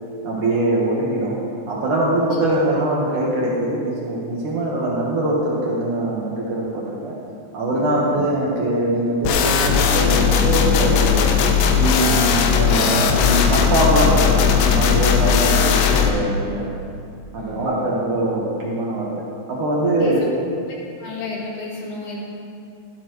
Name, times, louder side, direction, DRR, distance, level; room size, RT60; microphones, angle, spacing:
voice 1, 0.2-1.4 1.7-7.2 7.5-11.3 11.7-16.7 17.3-20.2, right 1 dB, 75° right, -5 dB, 1.8 m, -22 dB
voice 2, 7.8-8.3 17.4-18.0 19.9-20.3 20.7-22.2, left 2 dB, 55° left, -4 dB, 2.6 m, -33 dB
sound 1, 9.2-16.1, left 7 dB, 80° left, 2.7 m, -17 dB
16.0 x 12.0 x 3.2 m, 2.4 s
omnidirectional pair, 5.8 m